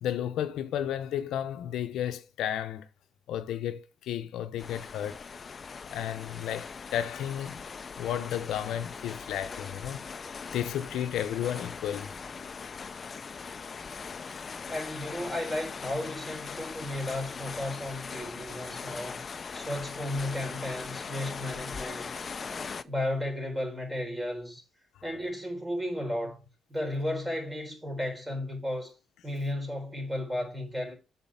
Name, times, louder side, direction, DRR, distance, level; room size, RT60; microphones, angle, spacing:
voice 1, 0.0-2.9 3.3-5.2 5.9-7.6 8.0-10.0 10.5-12.1, left 10 dB, 80° left, 0.7 m, -33 dB
sound 1, 4.6-22.8, left 5 dB, 40° left, 0.5 m, -40 dB
voice 2, 14.7-22.1 22.5-24.6 25.0-28.9 29.2-30.9, left 1 dB, 15° right, 3.9 m, -34 dB
7.3 x 4.2 x 5.6 m
cardioid pair, 90°, 0 cm